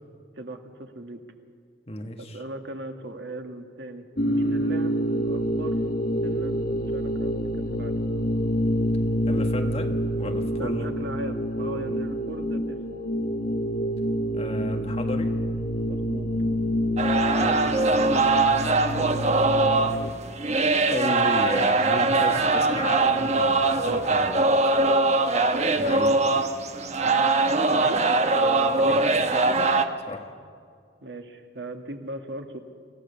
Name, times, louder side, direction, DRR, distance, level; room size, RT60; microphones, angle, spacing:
voice 1, 0.4-1.2 2.2-5.8 6.2-7.4 7.7-8.0 10.6-12.8 15.9-16.3 19.0-19.8 27.7-28.0 28.3-29.1 31.0-32.6, right 2 dB, 85° right, 5 dB, 1.7 m, -38 dB
voice 2, 1.9-2.4 9.3-10.9 14.3-15.3 17.3-18.4 19.6-19.8 20.9-24.7 25.8-26.2 28.8-29.0 30.1-30.3, left 1 dB, 35° left, 4 dB, 1.8 m, -34 dB
sound 1, 4.2-20.1, equal, 55° left, 1.1 m, -27 dB
sound 2, 17.0-29.9, right 3 dB, 40° right, 1.0 m, -22 dB
26.0 x 15.0 x 6.9 m, 2.2 s
head